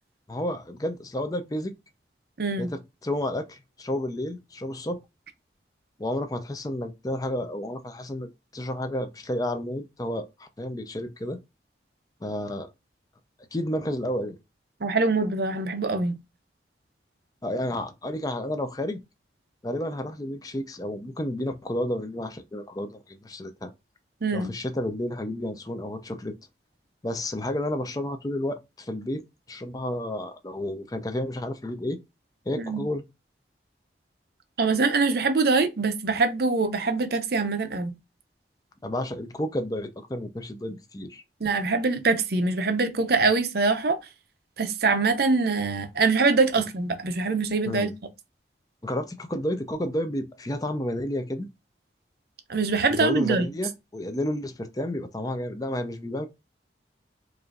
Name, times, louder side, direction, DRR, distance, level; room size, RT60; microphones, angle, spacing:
voice 1, 0.3-1.7 2.6-5.0 6.0-11.4 12.2-12.7 13.5-14.4 17.4-19.0 19.6-23.7 24.3-26.3 27.0-29.2 29.5-32.0 32.5-33.0 38.8-41.2 47.6-47.9 48.8-51.5 52.9-56.3, left 1 dB, 20° left, 0.5 m, -31 dB
voice 2, 2.4-2.7 14.8-16.2 24.2-24.5 32.6-32.8 34.6-38.0 41.4-44.0 44.6-47.9 52.5-53.5, right 3 dB, 60° right, 0.6 m, -24 dB
4.8 x 2.6 x 2.4 m
head